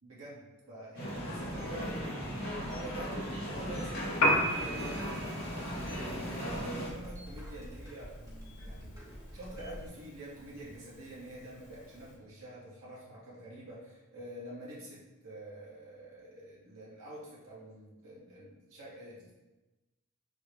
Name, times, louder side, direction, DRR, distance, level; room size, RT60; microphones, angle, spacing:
voice 1, 0.0-2.0 2.6-9.0 9.3-19.3, right 1 dB, 70° right, -6 dB, 1.0 m, -47 dB
sound 1, 0.9-6.9, equal, 45° left, 0.7 m, -37 dB
sound 2, 1.0-9.9, equal, 15° right, 0.6 m, -47 dB
Piano, 4.1-12.2, equal, 80° left, 0.6 m, -36 dB
3.5 x 2.1 x 3.1 m, 1.1 s
head